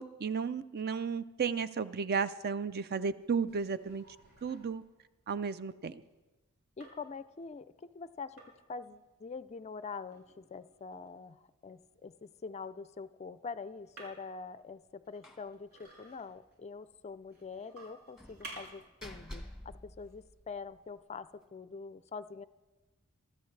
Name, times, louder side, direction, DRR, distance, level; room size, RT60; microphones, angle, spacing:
voice 1, 0.0-4.0 4.4-4.8 5.3-5.9, right 5 dB, 45° right, 14 dB, 0.5 m, -33 dB
sound 1, 3.0-6.3 6.8-7.4 8.2-8.8 9.9-11.6 13.7-14.5 14.9-16.6 17.2-18.9 19.3-19.4 20.0-20.2 20.7-20.8, right 2 dB, 75° right, 6.5 m, -54 dB
voice 2, 6.8-8.4 8.7-22.5, left 4 dB, 30° left, 14 dB, 0.4 m, -45 dB
Slam, 15.2-15.5 15.8-15.9 16.3-16.4 18.2-20.8, left 1 dB, ahead, 1.2 m, -49 dB
23.5 x 13.5 x 3.3 m, 1.1 s
head